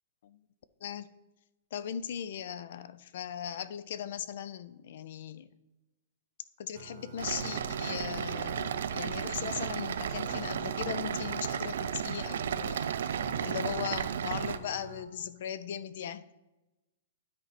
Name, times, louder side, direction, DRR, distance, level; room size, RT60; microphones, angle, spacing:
voice 1, 1.7-5.5 6.6-13.2 13.4-16.3, left 9 dB, 55° left, 15 dB, 0.4 m, -38 dB
sound 1, 6.7-15.0, right 4 dB, 45° right, 0.9 m, -46 dB
sound 2, 7.2-14.6, right 8 dB, 70° right, 0.4 m, -34 dB
9.6 x 4.3 x 4.2 m, 1.0 s
hypercardioid pair, 170°, 0 cm